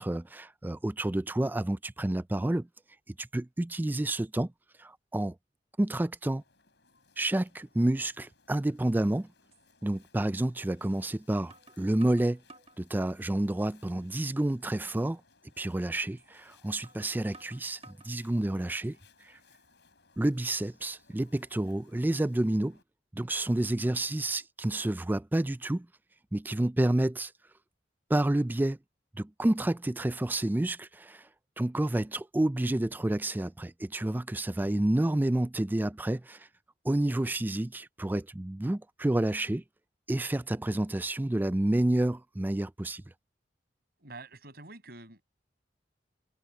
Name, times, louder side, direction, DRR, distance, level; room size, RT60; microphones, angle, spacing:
voice 1, 0.0-2.7 3.2-4.5 4.8-5.4 5.8-6.4 7.2-9.3 9.8-12.4 12.8-15.2 15.6-19.0 19.2-19.4 20.2-22.8 23.1-25.9 26.3-27.3 28.1-28.8 29.2-31.3 31.6-36.5 36.8-39.6 40.1-43.0, right 1 dB, 10° right, 0.3 m, -29 dB
sound 1, 6.4-22.8, left 4 dB, 65° left, 7.3 m, -65 dB
sound 2, 9.5-9.7 10.8-11.0 11.5-12.8 13.3-13.9 14.3-14.4 14.8-15.0 16.2-16.3 16.8-18.2 18.7-19.2, right 2 dB, 35° right, 1.6 m, -55 dB
voice 2, 44.0-45.2, right 2 dB, 60° right, 6.7 m, -47 dB
head